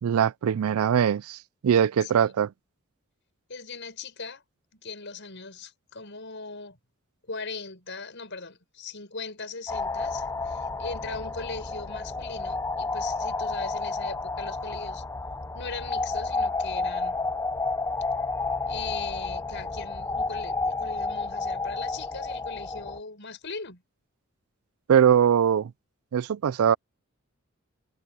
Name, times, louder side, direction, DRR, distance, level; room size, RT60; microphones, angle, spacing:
voice 1, 0.0-1.4 1.6-2.5 24.9-25.7 26.1-26.8, right 8 dB, 90° right, 0.4 m, -21 dB
voice 2, 2.0-2.4 3.5-4.4 4.7-6.8 7.3-15.1 15.5-17.2 18.7-23.8, left 4 dB, 60° left, 6.9 m, -39 dB
sound 1, 9.7-23.0, left 3 dB, 15° left, 0.5 m, -31 dB
head